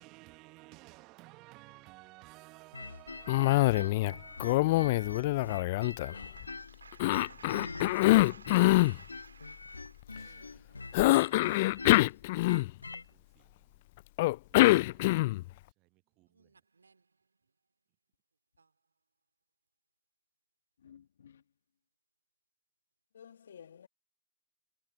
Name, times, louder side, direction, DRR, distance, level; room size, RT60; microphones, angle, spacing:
voice 1, 0.0-4.6 7.7-7.8 13.4-13.5 14.8-15.0 16.2-16.5, right 23 dB, 35° right, 1.0 m, -54 dB
sound 1, 2.7-6.8 7.1-13.1, left 3 dB, 85° left, 1.5 m, -45 dB
Cough, 3.3-4.1 4.4-6.5 7.0-9.0 10.9-12.9 14.2-15.5, left 19 dB, 50° left, 0.3 m, -25 dB
voice 2, 6.3-11.8 16.3-17.0 18.6-18.7, right 4 dB, 80° right, 3.0 m, -55 dB
voice 3, 20.8-21.4 23.1-23.9, left 8 dB, 70° left, 1.3 m, -53 dB
figure-of-eight pair, 110°, 0 cm